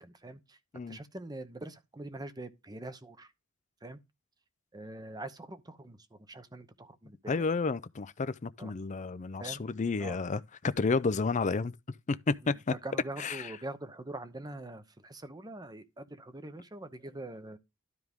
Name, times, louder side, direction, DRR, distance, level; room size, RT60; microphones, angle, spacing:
voice 1, 0.0-0.6 0.9-3.3 3.8-4.0 4.7-7.4 8.6-8.7 9.4-9.6 10.0-10.2 12.4-12.5 12.8-17.6, right 2 dB, 20° right, 0.8 m, -44 dB
voice 2, 7.3-12.7 13.2-13.6, left 4 dB, 35° left, 0.5 m, -31 dB
12.5 x 4.7 x 3.6 m
head